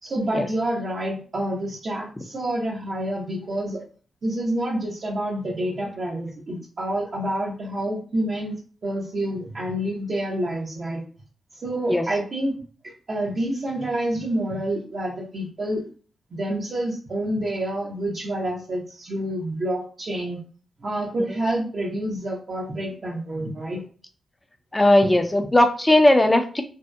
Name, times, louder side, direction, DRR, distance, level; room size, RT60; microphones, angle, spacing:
voice 1, 0.0-3.8 4.2-8.6 8.8-11.0 11.5-12.6 12.8-15.9 16.3-20.4 20.8-23.8, right 1 dB, 55° right, -4 dB, 0.7 m, -28 dB
voice 2, 24.7-26.6, left 1 dB, 20° left, 7 dB, 0.5 m, -17 dB
2.7 x 2.0 x 2.3 m, 0.40 s
cardioid pair, 65°, 0 cm